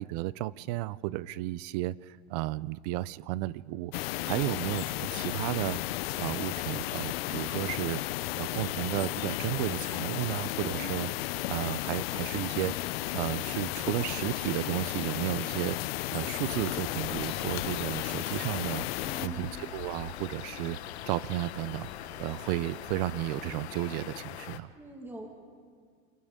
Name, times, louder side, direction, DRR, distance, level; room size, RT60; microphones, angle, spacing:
voice 1, 0.0-5.8 6.2-8.0 8.4-11.1 11.5-15.8 16.1-18.9 19.2-20.8 21.1-24.7, right 17 dB, 40° right, 19 dB, 0.4 m, -33 dB
sound 1, 3.9-19.3, left 17 dB, 65° left, 0.6 m, -34 dB
voice 2, 10.5-11.1 19.0-19.5 24.7-25.3, right 1 dB, 5° right, 2 dB, 1.7 m, -44 dB
sound 2, 16.8-24.6, left 11 dB, 80° left, 1.2 m, -42 dB
28.5 x 28.5 x 3.7 m, 2.1 s
supercardioid pair, 155°, 33 cm